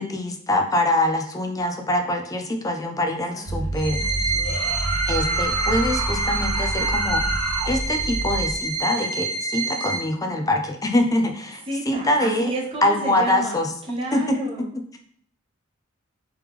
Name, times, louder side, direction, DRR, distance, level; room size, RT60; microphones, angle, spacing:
voice 1, 0.0-4.3 5.1-7.3 7.6-12.5 12.8-13.7 14.1-14.2 14.7-15.0, left 1 dB, 15° left, 4 dB, 0.4 m, -24 dB
voice 2, 3.3-3.7 4.0-4.4 11.7-13.6 13.9-14.7, right 2 dB, 25° right, -4 dB, 0.9 m, -31 dB
sound 1, 3.5-8.6, right 2 dB, 45° right, 0.4 m, -29 dB
sound 2, 3.7-10.0, right 3 dB, 55° left, 1.4 m, -27 dB
sound 3, 4.3-7.7, right 2 dB, 75° right, 1.2 m, -29 dB
3.4 x 3.1 x 3.3 m, 0.63 s
head